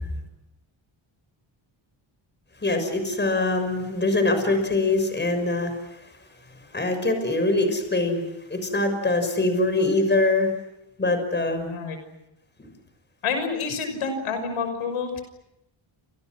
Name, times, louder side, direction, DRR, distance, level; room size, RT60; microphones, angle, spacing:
voice 1, 2.6-5.7 6.7-10.5 11.0-11.8, left 2 dB, 20° left, 7 dB, 6.4 m, -23 dB
voice 2, 11.7-12.0 13.2-15.2, left 5 dB, 85° left, 7 dB, 6.1 m, -28 dB
29.5 x 28.0 x 6.3 m, 0.86 s
cardioid pair, 120°, 49 cm